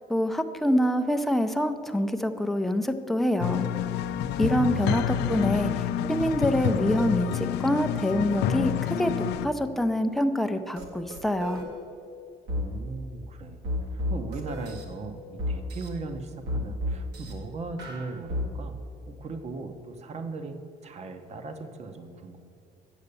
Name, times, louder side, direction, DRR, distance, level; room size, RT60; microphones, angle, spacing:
voice 1, 0.1-3.6 4.4-11.6, equal, ahead, 7 dB, 0.5 m, -26 dB
sound 1, 3.4-9.5, left 9 dB, 85° left, 0.4 m, -28 dB
sound 2, 10.8-10.9 11.1-11.7 12.5-12.6 13.6-14.8 15.4-15.9 16.5-17.3 17.8-18.5, left 1 dB, 75° right, 1.6 m, -31 dB
voice 2, 12.5-13.6 13.9-18.8 19.1-22.4, right 3 dB, 40° right, 7 dB, 0.9 m, -38 dB
8.2 x 6.6 x 6.8 m, 2.5 s
cardioid pair, 110°, 17 cm